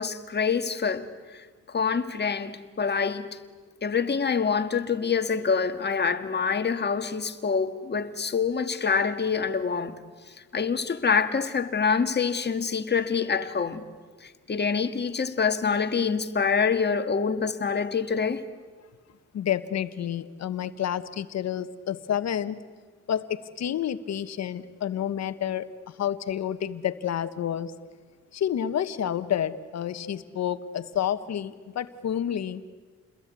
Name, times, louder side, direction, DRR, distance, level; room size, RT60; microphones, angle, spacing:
voice 1, 0.0-3.4 3.8-10.0 10.5-13.9 14.2-18.4, left 5 dB, 35° left, 1.7 m, -26 dB
voice 2, 19.3-22.6 23.1-27.7 28.3-32.6, left 10 dB, 60° left, 1.3 m, -29 dB
29.0 x 21.5 x 8.3 m
cardioid pair, 90°, 30 cm